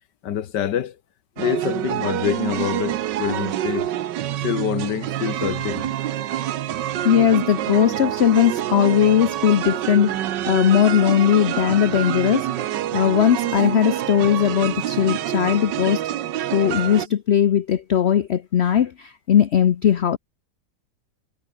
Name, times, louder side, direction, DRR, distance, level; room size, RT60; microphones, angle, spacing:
voice 1, 0.2-1.0 1.4-3.9 4.4-5.9, left 10 dB, 80° left, 1.7 m, -26 dB
sound 1, 1.4-17.1, right 12 dB, 90° right, 1.5 m, -26 dB
voice 2, 7.0-16.0 16.5-20.2, left 9 dB, 55° left, 0.8 m, -19 dB
omnidirectional pair, 1.9 m